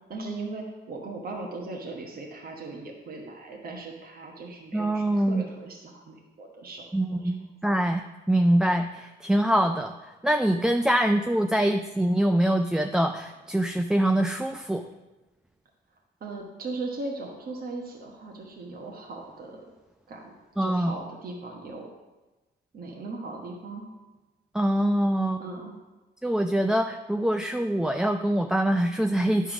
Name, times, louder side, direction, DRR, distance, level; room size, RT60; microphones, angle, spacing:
voice 1, 0.1-7.4 16.2-19.6 20.1-21.9 22.7-23.9 25.4-25.8, right 3 dB, 50° right, 0 dB, 1.2 m, -38 dB
voice 2, 4.7-5.5 6.9-14.9 20.6-20.9 24.5-25.4 26.2-29.5, right 1 dB, 5° right, 6 dB, 0.3 m, -24 dB
10.0 x 3.6 x 6.0 m, 1.2 s
cardioid pair, 90°, 20 cm